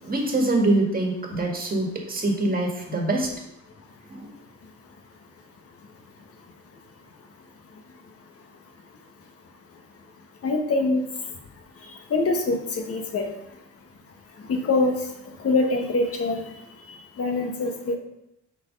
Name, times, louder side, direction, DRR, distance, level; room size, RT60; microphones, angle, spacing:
voice 1, 0.0-3.3 4.1-4.3, right 2 dB, 30° right, 1 dB, 1.8 m, -24 dB
voice 2, 10.4-11.0 12.1-13.3 14.5-14.9 15.4-16.4 17.2-18.0, left 3 dB, 50° left, 4 dB, 1.2 m, -23 dB
6.2 x 4.2 x 5.3 m, 0.83 s
cardioid pair, 90°, 30 cm